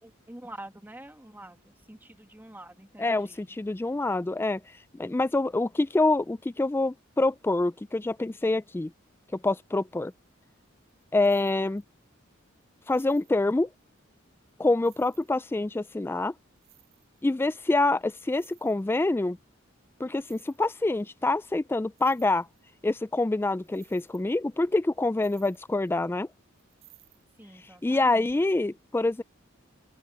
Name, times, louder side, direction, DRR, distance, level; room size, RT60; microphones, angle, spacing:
voice 1, 0.0-3.5 27.4-28.3, right 1 dB, 10° right, 1.8 m, -46 dB
voice 2, 3.0-4.6 4.9-8.9 9.3-10.1 11.1-11.8 12.9-13.7 14.6-16.3 17.2-19.4 20.0-22.5 22.8-26.3 27.8-29.2, left 2 dB, 10° left, 0.3 m, -26 dB
sound 1, 10.1-10.3 10.5-12.1 12.5-12.6 12.9-14.0 14.5-14.6 14.8-15.9 16.5-17.4 17.8-17.9 18.0-19.1 20.0-21.0 21.3-21.4 21.7-23.1 23.4-26.1 26.5-27.2, right 19 dB, 85° right, 7.2 m, -61 dB
open air
head